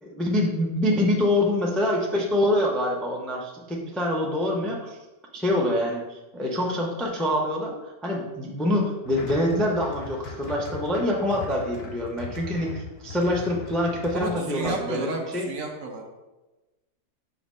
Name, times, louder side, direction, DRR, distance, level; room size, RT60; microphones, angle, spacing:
voice 1, 0.0-5.0 5.3-7.7 8.0-15.5, left 1 dB, ahead, -1 dB, 0.3 m, -25 dB
sound 1, 9.0-14.7, left 4 dB, 55° left, 0.7 m, -39 dB
voice 2, 14.1-16.0, right 3 dB, 60° right, 1 dB, 1.1 m, -32 dB
5.9 x 3.1 x 5.3 m, 1.1 s
omnidirectional pair, 1.7 m